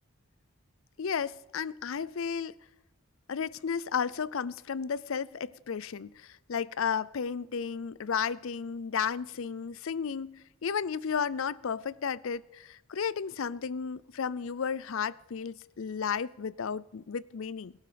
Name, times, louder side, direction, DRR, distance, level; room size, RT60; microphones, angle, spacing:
voice 1, 1.0-2.5 3.3-17.7, left 6 dB, 65° left, 0.5 m, -33 dB
21.5 x 12.0 x 5.1 m
head